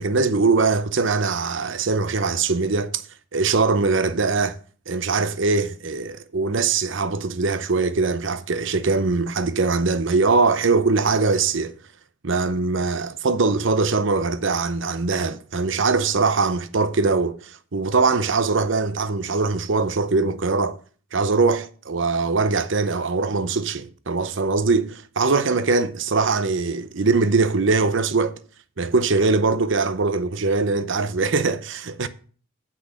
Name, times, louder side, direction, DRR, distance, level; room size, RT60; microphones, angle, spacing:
voice 1, 0.0-3.0 3.3-4.5 4.9-11.7 12.2-20.8 21.1-28.4 28.8-32.1, right 4 dB, 60° right, 0.7 m, -22 dB
8.3 x 6.0 x 7.5 m
head